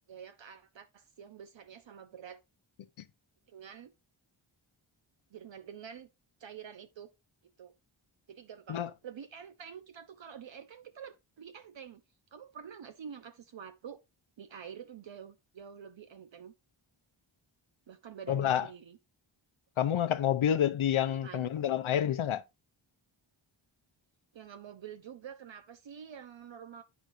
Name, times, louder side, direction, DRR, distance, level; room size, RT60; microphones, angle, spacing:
voice 1, 0.1-2.4 3.5-3.9 5.3-6.1 6.4-7.1 7.6-7.7 8.3-12.0 12.3-14.0 14.4-16.5 17.9-19.0 21.1-21.5 24.3-26.8, right 8 dB, 65° right, 0.9 m, -47 dB
voice 2, 18.3-18.7 19.8-22.4, left 10 dB, 80° left, 0.8 m, -28 dB
9.0 x 6.1 x 2.6 m
cardioid pair, 55°, 49 cm